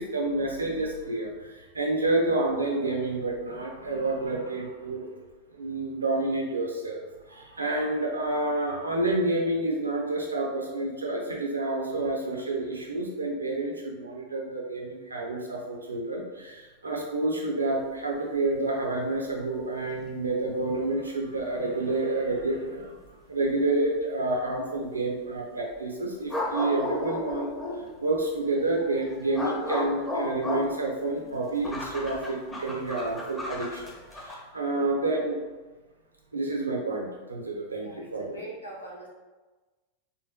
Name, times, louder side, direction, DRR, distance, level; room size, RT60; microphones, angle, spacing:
voice 1, 0.0-5.1 5.5-23.0 23.3-27.5 27.8-35.4 36.3-38.4, right 2 dB, 80° right, 0 dB, 0.6 m, -29 dB
sound 1, 21.4-21.5 22.4-22.5 26.3-27.9 28.5-34.4, left 1 dB, 5° left, 0.8 m, -34 dB
voice 2, 37.8-39.1, right 1 dB, 85° left, -5 dB, 0.9 m, -43 dB
3.3 x 2.7 x 2.9 m, 1.3 s
figure-of-eight pair, 90°, 0 cm